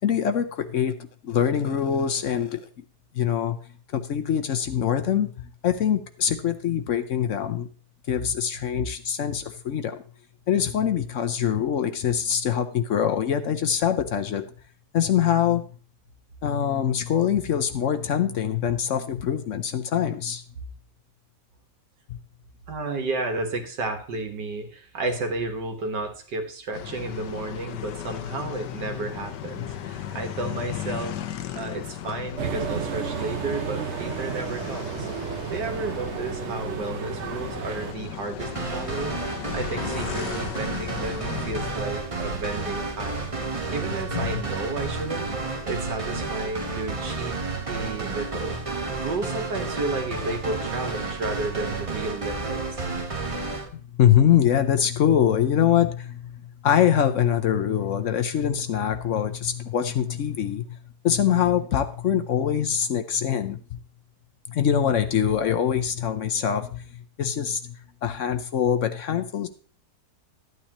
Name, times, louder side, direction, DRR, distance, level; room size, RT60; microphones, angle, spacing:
voice 1, 0.0-1.0 1.2-2.6 3.1-3.6 3.9-7.7 8.1-10.0 10.5-14.4 14.9-15.6 16.4-20.4 22.1-22.2 44.1-44.4 54.0-56.4 56.6-60.7 61.0-63.8 64.5-66.8 67.2-67.7 68.0-69.5, left 9 dB, 60° left, 9 dB, 0.9 m, -24 dB
voice 2, 22.7-31.2 31.6-35.1 35.5-39.2 39.5-43.4 43.7-45.3 45.6-47.3 47.7-52.8, right 2 dB, 80° right, 5 dB, 2.1 m, -32 dB
sound 1, 26.7-41.7, left 10 dB, 85° left, 1.4 m, -36 dB
sound 2, 32.4-37.9, right 8 dB, 55° right, 0.8 m, -32 dB
sound 3, 38.4-53.7, right 3 dB, 25° right, 0.8 m, -31 dB
13.0 x 9.4 x 3.0 m, 0.41 s
omnidirectional pair, 1.8 m